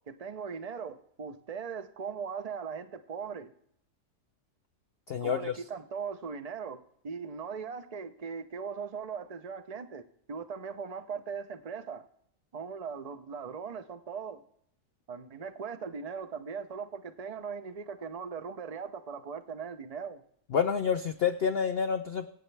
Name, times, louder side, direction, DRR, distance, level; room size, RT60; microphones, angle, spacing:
voice 1, 0.1-3.5 5.2-12.0 12.5-14.4 15.1-20.2, right 6 dB, 60° right, 0.4 m, -39 dB
voice 2, 5.1-5.5 20.5-22.3, left 7 dB, 80° left, 0.5 m, -28 dB
24.5 x 8.2 x 3.3 m
omnidirectional pair, 1.8 m